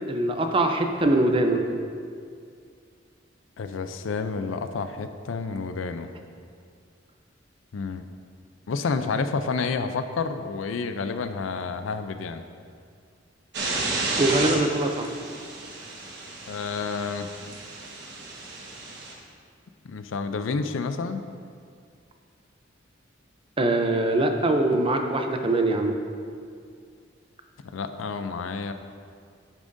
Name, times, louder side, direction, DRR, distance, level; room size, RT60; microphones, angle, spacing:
voice 1, 0.1-1.6 14.2-15.1 23.6-25.9, right 2 dB, 30° right, 5 dB, 0.6 m, -22 dB
voice 2, 3.6-6.1 7.7-8.0 8.7-12.4 16.5-17.3 19.8-21.3 27.6-28.7, left 4 dB, 80° left, 9 dB, 0.4 m, -29 dB
sound 1, 13.5-19.1, right 2 dB, 60° right, 1.2 m, -32 dB
9.7 x 7.2 x 2.6 m, 2.2 s
head